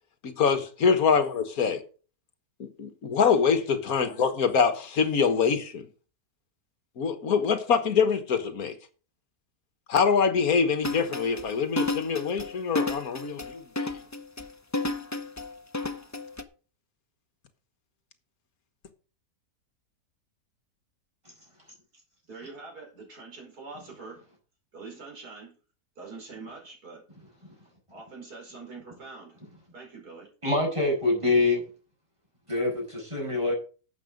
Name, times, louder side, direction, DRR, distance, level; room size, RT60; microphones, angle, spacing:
voice 1, 0.2-1.8 2.8-5.9 7.0-8.7 9.9-13.9, left 6 dB, 70° left, 1.8 m, -24 dB
sound 1, 10.8-16.4, left 2 dB, 20° left, 0.5 m, -32 dB
voice 2, 22.3-24.2 24.7-25.6 26.0-27.0 27.9-29.4 29.7-30.3, right 4 dB, 80° right, 5.5 m, -44 dB
voice 3, 30.4-31.6 32.5-33.5, left 2 dB, 20° right, 6.3 m, -25 dB
12.0 x 7.9 x 5.2 m
omnidirectional pair, 1.6 m